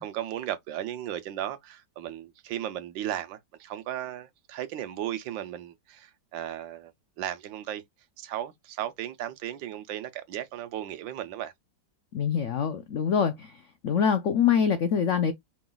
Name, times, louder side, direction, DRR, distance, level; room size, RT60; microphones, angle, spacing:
voice 1, 0.0-6.9 7.2-7.8 8.2-11.5, right 12 dB, 80° right, 1.4 m, -35 dB
voice 2, 12.1-13.5 13.8-15.3, left 7 dB, 75° left, 0.6 m, -24 dB
4.9 x 2.3 x 3.8 m
omnidirectional pair, 2.0 m